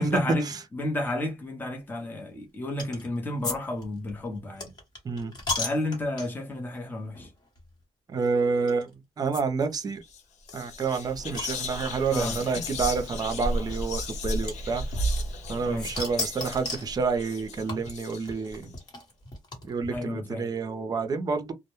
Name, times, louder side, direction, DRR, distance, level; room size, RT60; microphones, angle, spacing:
voice 1, 0.0-4.7 5.5-7.3 12.1-12.4 15.6-15.9 19.9-20.5, left 1 dB, 15° left, 0.7 m, -32 dB
sound 1, 2.8-3.1 3.4-6.5 7.1-7.3 7.6-7.7 8.7-8.8 9.3-9.4 9.7-9.8 10.0-10.1 10.5-12.1 13.0-13.1 14.5-15.5 15.8-16.9 17.7-20.0, left 3 dB, 35° left, 1.0 m, -35 dB
voice 2, 8.1-8.9 9.2-10.0 10.5-14.8 15.5-18.7 19.7-21.5, right 4 dB, 35° right, 0.5 m, -28 dB
Whispering, 10.0-10.2 10.5-18.6, equal, 75° left, 0.6 m, -34 dB
2.1 x 2.0 x 2.9 m
cardioid pair, 125°, 12 cm